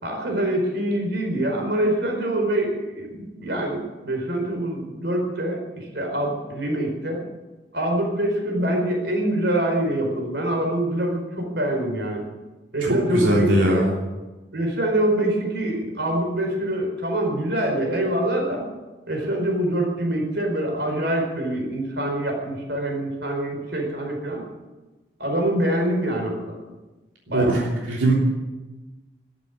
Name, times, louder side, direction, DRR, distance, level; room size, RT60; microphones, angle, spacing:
voice 1, 0.0-7.2 7.7-12.2 12.7-13.9 14.5-18.6 19.1-24.4 25.2-26.6 27.3-27.6, right 1 dB, 65° right, 2 dB, 4.7 m, -25 dB
voice 2, 12.8-13.9 27.3-28.1, right 1 dB, 90° right, -3 dB, 3.3 m, -20 dB
13.5 x 11.0 x 9.6 m, 1.2 s
head